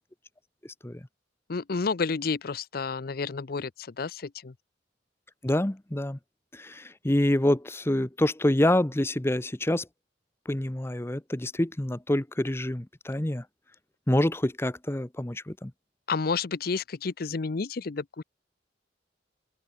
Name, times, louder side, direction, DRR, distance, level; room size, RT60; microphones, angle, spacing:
voice 1, 1.5-4.5 16.1-18.2, left 4 dB, 55° left, 0.6 m, -30 dB
voice 2, 5.4-6.2 6.5-9.9 10.5-13.4 14.1-15.7, left 1 dB, 15° left, 0.7 m, -26 dB
open air
head